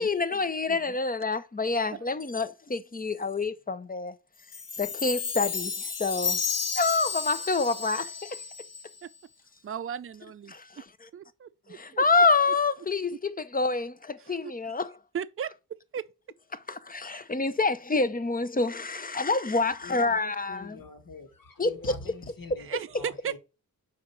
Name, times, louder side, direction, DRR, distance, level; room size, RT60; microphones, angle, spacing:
voice 1, 0.0-4.1 4.8-6.4 6.7-8.4 10.5-11.1 11.7-14.9 16.7-20.8 21.6-21.9, left 3 dB, 25° left, 0.7 m, -27 dB
Chime, 4.5-9.0, left 5 dB, 45° left, 1.1 m, -32 dB
voice 2, 9.6-10.5 11.1-12.0 14.2-14.5 15.1-15.5 15.9-16.0 22.6-23.4, right 8 dB, 35° right, 0.5 m, -36 dB
voice 3, 19.8-23.4, left 3 dB, 65° left, 1.7 m, -44 dB
5.0 x 4.6 x 5.8 m
wide cardioid pair, 80°, 36 cm